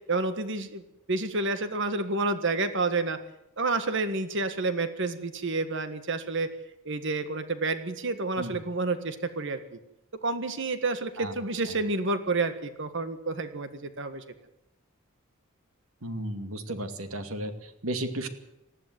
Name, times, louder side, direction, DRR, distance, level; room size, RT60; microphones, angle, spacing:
voice 1, 0.1-0.8 1.1-3.2 3.6-6.5 6.9-9.6 10.2-14.2, right 3 dB, 60° right, 10 dB, 1.7 m, -29 dB
voice 2, 16.0-18.3, right 1 dB, 75° right, 7 dB, 2.5 m, -34 dB
19.5 x 14.5 x 9.5 m, 0.86 s
head